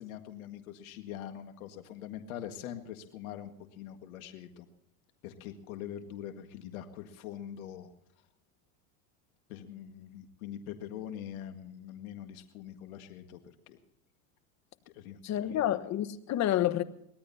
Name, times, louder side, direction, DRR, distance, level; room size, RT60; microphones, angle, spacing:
voice 1, 0.0-4.7 5.2-7.9 9.5-13.4 13.7-13.8 14.9-15.6, left 10 dB, 80° left, 1.9 m, -43 dB
voice 2, 15.2-16.8, left 12 dB, 40° left, 1.3 m, -29 dB
24.0 x 19.0 x 2.8 m
supercardioid pair, 115°, 42 cm